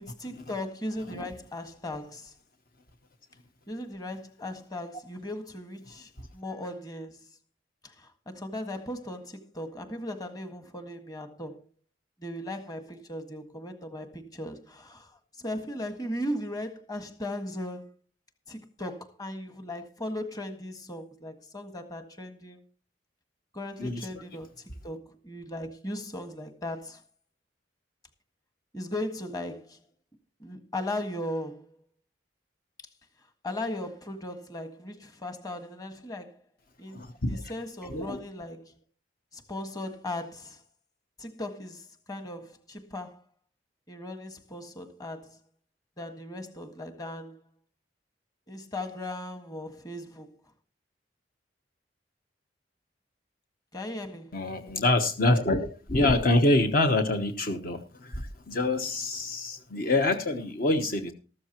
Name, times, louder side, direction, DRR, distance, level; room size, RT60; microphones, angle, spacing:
voice 1, 0.0-2.3 3.7-7.3 7.8-11.6 12.2-17.9 18.5-22.6 23.5-27.0 28.7-29.8 30.4-31.7 33.4-36.4 36.8-37.0 37.3-38.7 39.3-40.6 41.2-43.2 43.9-45.4 46.0-47.4 48.5-50.3 53.7-54.3, left 1 dB, 20° left, 1.7 m, -37 dB
voice 2, 23.8-24.2 36.9-37.4 37.9-38.2 54.3-61.1, left 2 dB, 50° left, 1.1 m, -26 dB
14.0 x 13.5 x 3.0 m
head